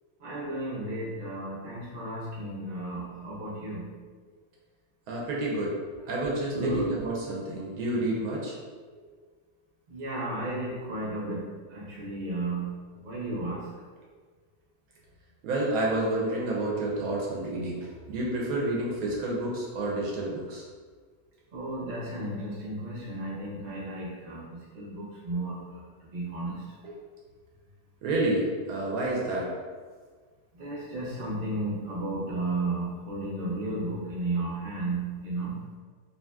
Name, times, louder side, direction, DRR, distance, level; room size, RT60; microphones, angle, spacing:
voice 1, 0.2-3.9 6.5-6.9 9.9-12.7 13.0-13.6 21.5-25.8 26.1-26.6 30.6-35.5, right 2 dB, 45° right, -7 dB, 0.9 m, -33 dB
voice 2, 5.1-5.8 6.1-8.5 15.4-20.6 26.8-27.0 28.0-29.5, right 1 dB, 80° right, -4 dB, 1.1 m, -29 dB
2.6 x 2.6 x 2.2 m, 1.5 s
omnidirectional pair, 1.5 m